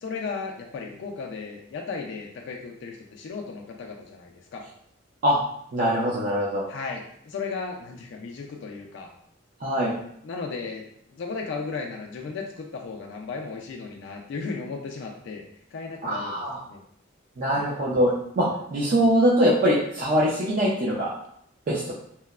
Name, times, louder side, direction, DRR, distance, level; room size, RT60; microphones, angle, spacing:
voice 1, 0.0-4.6 6.7-9.1 10.2-10.8 11.1-15.4 15.7-16.8 17.5-17.7, left 4 dB, 65° left, 1 dB, 0.3 m, -35 dB
voice 2, 5.7-6.7 9.6-9.9 16.0-16.6 17.4-21.1 21.7-21.9, equal, 45° right, -5 dB, 0.4 m, -23 dB
2.9 x 2.0 x 2.3 m, 0.70 s
head